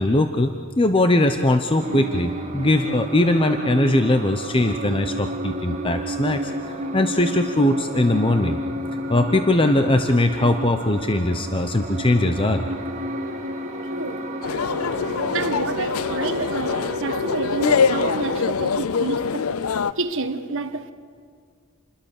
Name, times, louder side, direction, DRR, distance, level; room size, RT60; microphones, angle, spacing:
voice 1, 0.0-8.6 9.1-12.6, left 1 dB, 25° left, 0.8 m, -20 dB
sound 1, 1.8-18.5, right 1 dB, 35° right, 2.0 m, -31 dB
voice 2, 13.9-14.2 15.3-19.5 20.0-20.9, right 3 dB, 60° right, 1.3 m, -29 dB
sound 2, 14.4-19.9, left 6 dB, 70° left, 0.5 m, -24 dB
27.5 x 21.0 x 6.6 m
head